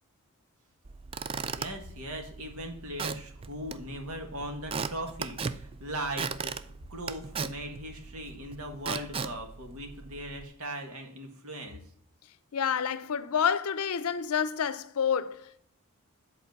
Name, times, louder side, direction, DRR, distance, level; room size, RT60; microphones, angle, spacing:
Squeak / Wood, 0.8-10.5, right 5 dB, 25° right, 0.3 m, -38 dB
voice 1, 1.4-11.8, right 1 dB, 75° right, 1.7 m, -39 dB
voice 2, 12.5-15.6, left 7 dB, 80° left, 0.5 m, -28 dB
8.0 x 4.2 x 5.2 m
head